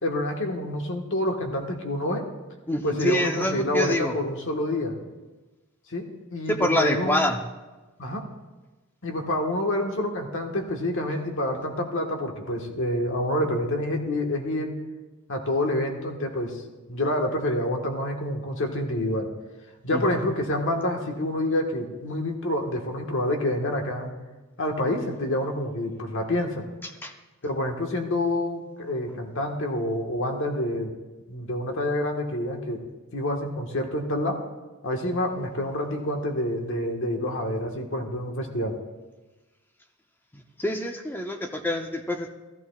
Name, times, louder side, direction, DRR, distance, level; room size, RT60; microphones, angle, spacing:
voice 1, 0.0-2.2 2.8-4.9 5.9-7.2 8.0-8.3 9.0-14.7 15.3-16.6 16.9-19.3 19.8-24.1 24.6-26.6 27.4-30.9 31.3-32.8 33.1-34.4 34.8-38.8, left 1 dB, 65° left, 3 dB, 1.4 m, -27 dB
voice 2, 2.7-4.1 6.5-7.4 19.9-20.0 26.8-27.1 40.3-42.3, left 1 dB, 10° left, 4 dB, 0.6 m, -26 dB
14.0 x 14.0 x 2.3 m, 1.2 s
head